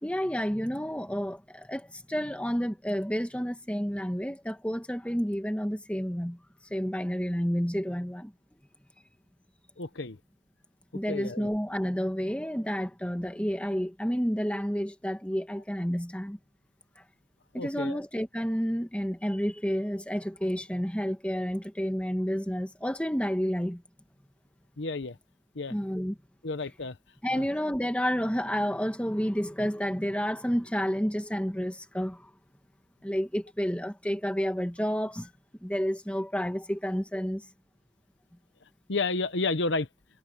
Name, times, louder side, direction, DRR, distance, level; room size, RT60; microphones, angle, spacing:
voice 1, 0.0-6.4 6.7-8.3 10.9-16.4 17.5-23.8 25.7-26.2 27.2-32.3 33.0-35.3 35.6-37.5, equal, 5° left, 1.6 m, -30 dB
voice 2, 9.8-10.2 11.1-11.5 17.5-18.0 24.8-25.2 25.5-25.7 26.4-27.0 27.3-27.4 38.9-39.9, left 3 dB, 65° left, 1.0 m, -31 dB
head